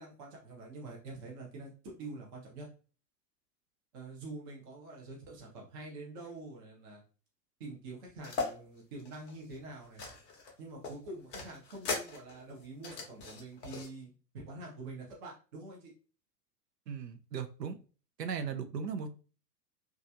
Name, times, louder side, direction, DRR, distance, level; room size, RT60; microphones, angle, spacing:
voice 1, 0.0-2.7 3.9-7.0 7.6-10.0 10.6-15.9, right 2 dB, 15° right, -2 dB, 0.3 m, -46 dB
sound 1, 8.2-8.5 9.0-10.5 10.8-13.9, left 4 dB, 20° left, 0.7 m, -39 dB
voice 2, 16.9-17.8 18.2-19.1, right 6 dB, 80° right, 8 dB, 0.6 m, -37 dB
3.0 x 2.3 x 2.5 m, 0.36 s
figure-of-eight pair, 95°, 49 cm